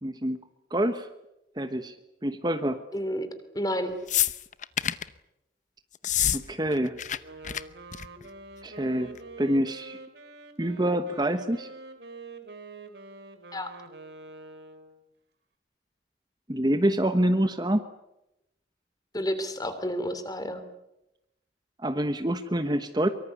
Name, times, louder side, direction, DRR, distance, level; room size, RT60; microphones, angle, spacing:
voice 1, 0.0-0.4 0.7-1.1 1.6-2.0 2.2-2.8 6.3-7.0 8.6-10.0 10.6-11.7 16.5-17.9 21.8-23.1, right 1 dB, 25° right, 9 dB, 1.2 m, -26 dB
voice 2, 2.9-3.3 3.5-4.0 13.5-13.7 19.1-20.6, equal, 20° left, 10 dB, 3.0 m, -30 dB
sound 1, 4.1-5.1 6.0-6.4 6.7-7.2 7.4-7.6 7.9-8.2 9.2-9.3, left 11 dB, 40° left, 0.9 m, -27 dB
Wind instrument woodwind instrument, 7.2-15.0, right 3 dB, 65° right, 2.9 m, -46 dB
24.0 x 24.0 x 8.3 m, 0.89 s
head